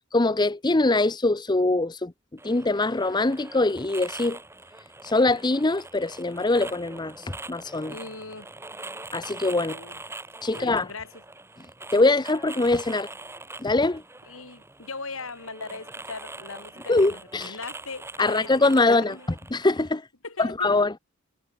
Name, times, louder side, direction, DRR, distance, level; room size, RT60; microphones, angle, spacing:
voice 1, 0.1-2.1 2.4-4.4 5.0-7.9 9.1-9.7 10.4-10.9 11.9-13.1 13.6-14.0 16.9-17.6 18.2-19.2 19.5-20.1 20.4-21.0, left 2 dB, 20° left, 0.7 m, -23 dB
sound 1, 2.4-19.9, right 2 dB, 10° right, 4.8 m, -43 dB
voice 2, 7.9-8.5 9.6-10.0 10.5-11.2 14.2-19.3 20.2-20.7, left 3 dB, 70° left, 6.6 m, -39 dB
head